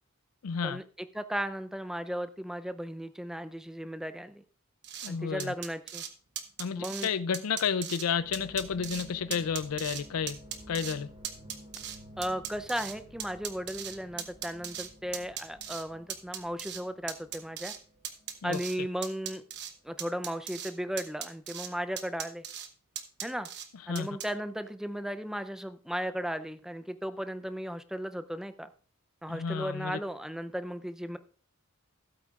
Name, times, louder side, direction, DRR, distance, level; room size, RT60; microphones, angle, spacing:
voice 1, 0.4-0.8 5.0-5.5 6.6-10.4 10.7-11.1 18.4-18.6 23.9-24.1 29.3-30.0, left 6 dB, 90° left, 0.5 m, -31 dB
voice 2, 1.1-4.4 5.1-6.0 6.8-7.1 12.2-17.7 18.4-19.4 19.8-22.4 23.2-23.5 23.9-28.7 29.2-31.2, equal, ahead, 0.5 m, -36 dB
sound 1, 4.8-5.1 5.4-6.1 6.4-7.1 7.3-8.0 8.3-9.0 9.3-10.0 10.3-10.9 11.2-12.9 13.2-14.9 15.1-15.8 16.1-16.8 17.1-17.8 18.0-18.8 19.0-19.7 20.0-20.7 21.0-21.7 22.0-22.7 22.9-23.7 23.9-24.3, right 9 dB, 50° right, 1.1 m, -38 dB
sound 2, 8.2-20.3 20.5-21.0, equal, 35° right, 4.1 m, -53 dB
16.0 x 8.5 x 2.4 m
head